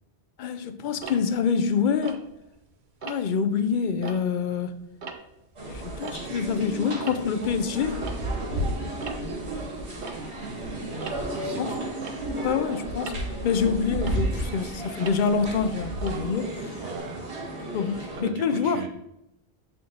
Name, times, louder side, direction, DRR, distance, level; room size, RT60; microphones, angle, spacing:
voice 1, 0.4-2.2 3.0-4.7 5.7-8.0 11.6-11.8 12.3-16.8 17.7-18.8, left 6 dB, 55° left, 0.6 m, -26 dB
Tick-tock, 1.0-2.6 3.0-3.4 3.9-6.6 6.9-17.0, right 4 dB, 50° right, 0.8 m, -42 dB
sound 1, 5.6-18.2, right 1 dB, 70° right, 2.5 m, -33 dB
voice 2, 10.4-11.8 16.8-17.3 18.2-18.9, right 6 dB, 85° right, 1.0 m, -39 dB
8.5 x 4.0 x 3.6 m
omnidirectional pair, 1.2 m